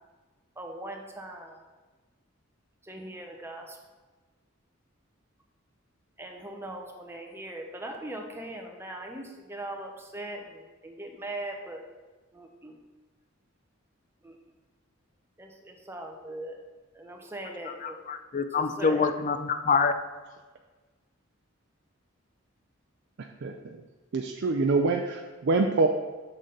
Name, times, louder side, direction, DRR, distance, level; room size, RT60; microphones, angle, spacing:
voice 1, 0.6-1.6 2.8-3.8 6.2-11.9 12.3-12.8 14.2-14.4 15.4-16.6 16.9-18.0 18.5-19.1, right 1 dB, 10° right, 2 dB, 0.8 m, -40 dB
voice 2, 17.8-19.9, left 5 dB, 35° left, 8 dB, 0.4 m, -26 dB
voice 3, 24.1-25.9, right 3 dB, 60° right, 3 dB, 0.4 m, -25 dB
6.7 x 6.2 x 3.8 m, 1.3 s
head